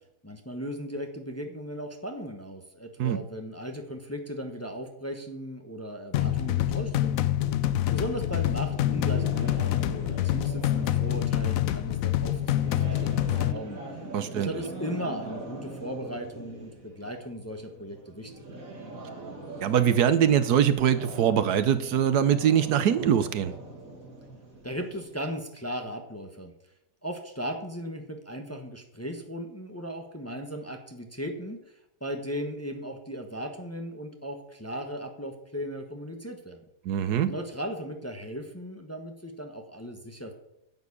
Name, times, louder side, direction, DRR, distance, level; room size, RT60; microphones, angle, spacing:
voice 1, 0.2-7.3 7.9-13.8 14.3-18.4 24.6-26.5 27.0-31.7 32.0-36.6 37.3-40.3, equal, 10° left, 4 dB, 1.2 m, -37 dB
sound 1, 6.1-13.5, left 12 dB, 70° left, 0.9 m, -26 dB
sound 2, 8.7-25.2, right 2 dB, 50° right, 2.7 m, -42 dB
voice 2, 14.1-14.5 19.6-23.5 36.8-37.3, right 9 dB, 70° right, 13 dB, 1.3 m, -23 dB
10.5 x 7.2 x 8.5 m, 0.82 s
omnidirectional pair, 1.8 m